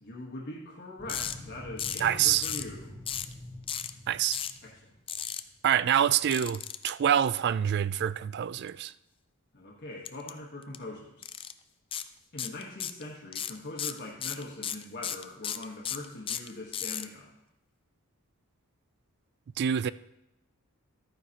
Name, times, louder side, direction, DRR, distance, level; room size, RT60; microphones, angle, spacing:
voice 1, 0.0-3.0 4.6-4.8 5.1-5.2 9.5-11.2 12.3-17.3, left 2 dB, 50° left, 1.4 m, -42 dB
sound 1, 1.0-5.7, left 1 dB, 15° right, 1.8 m, -46 dB
sound 2, 1.1-1.3 1.8-2.1 2.4-2.7 3.1-3.3 3.7-3.9 4.3-4.6 5.1-5.4 6.3-6.9 10.0-10.3 10.6-10.8 11.2-11.5 11.9-12.1 12.4-13.0 13.3-17.0, left 9 dB, 25° left, 0.3 m, -34 dB
voice 2, 2.0-2.5 4.1-4.4 5.6-8.9 19.6-19.9, right 9 dB, 50° right, 0.3 m, -26 dB
13.0 x 9.5 x 2.9 m
head